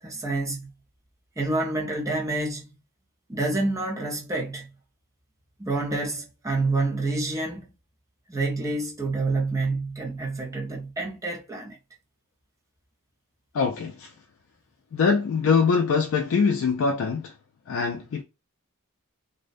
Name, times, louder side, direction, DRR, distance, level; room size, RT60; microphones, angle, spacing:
voice 1, 0.0-0.7 1.4-2.7 3.3-4.7 5.6-7.7 8.3-11.8, right 2 dB, 15° right, 0.5 m, -28 dB
voice 2, 13.5-14.1 14.9-17.3 17.7-18.2, left 5 dB, 60° left, 0.3 m, -23 dB
2.6 x 2.1 x 2.4 m
head